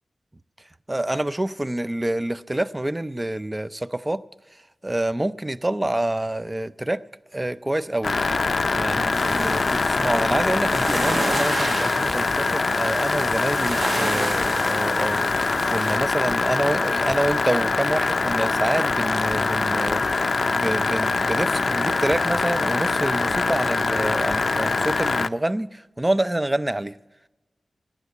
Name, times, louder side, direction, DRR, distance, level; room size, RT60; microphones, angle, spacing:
voice 1, 0.9-4.2 4.8-7.0 7.3-8.2 8.7-15.3 15.7-27.0, right 1 dB, 20° right, 0.4 m, -27 dB
sound 1, 8.0-25.3, left 3 dB, 50° left, 0.4 m, -23 dB
sound 2, 9.1-16.0, right 2 dB, 55° right, 1.3 m, -31 dB
14.5 x 9.9 x 7.1 m
wide cardioid pair, 90°, 0 cm